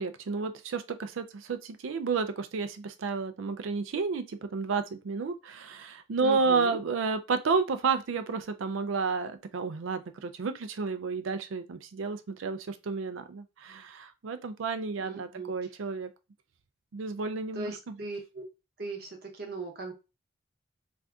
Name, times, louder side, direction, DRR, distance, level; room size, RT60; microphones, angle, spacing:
voice 1, 0.0-16.1 16.9-18.0, right 4 dB, 80° right, 0.4 m, -31 dB
voice 2, 6.2-6.8 15.0-15.5 17.5-18.4 18.8-19.9, right 3 dB, 50° right, 0.7 m, -38 dB
2.6 x 2.4 x 3.4 m
head